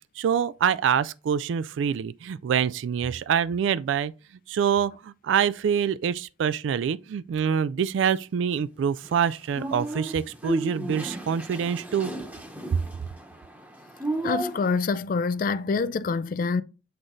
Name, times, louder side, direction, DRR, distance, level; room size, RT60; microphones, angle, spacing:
voice 1, 0.2-4.1 4.5-12.1 12.7-12.8, right 7 dB, 85° right, 0.3 m, -25 dB
sound 1, 9.0-14.8, right 2 dB, 10° right, 0.9 m, -34 dB
voice 2, 14.2-16.6, left 4 dB, 50° left, 0.4 m, -26 dB
7.9 x 3.8 x 3.9 m
head